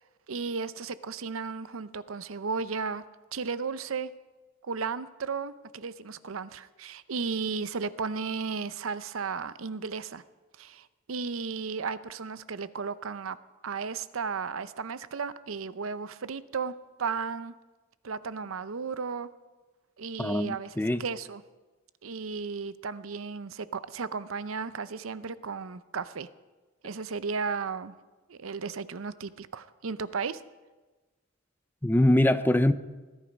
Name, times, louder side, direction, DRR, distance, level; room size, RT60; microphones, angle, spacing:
voice 1, 0.3-3.0 3.3-4.1 4.6-10.2 10.6-13.4 13.6-16.7 17.0-17.5 18.0-19.3 20.0-21.4 22.0-26.3 26.8-27.9 28.3-30.4, right 5 dB, 75° right, 0.6 m, -34 dB
voice 2, 20.2-21.0 31.8-32.7, left 1 dB, 10° left, 0.5 m, -23 dB
20.5 x 12.0 x 5.3 m
head